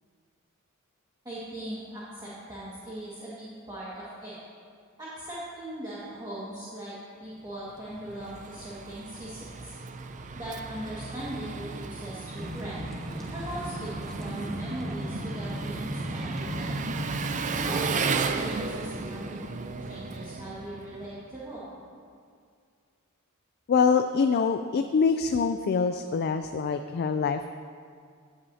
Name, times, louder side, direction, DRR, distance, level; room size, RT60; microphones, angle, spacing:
voice 1, 1.2-4.3 5.0-9.8 10.4-12.8 13.3-16.8 17.6-21.6, right 1 dB, 20° right, -9 dB, 1.8 m, -39 dB
Engine, 7.7-21.3, right 4 dB, 35° right, 0.4 m, -35 dB
sound 1, 12.3-17.9, equal, ahead, 1.4 m, -37 dB
voice 2, 23.7-27.5, left 5 dB, 45° left, 8 dB, 0.3 m, -25 dB
16.0 x 8.6 x 2.8 m, 2.2 s
head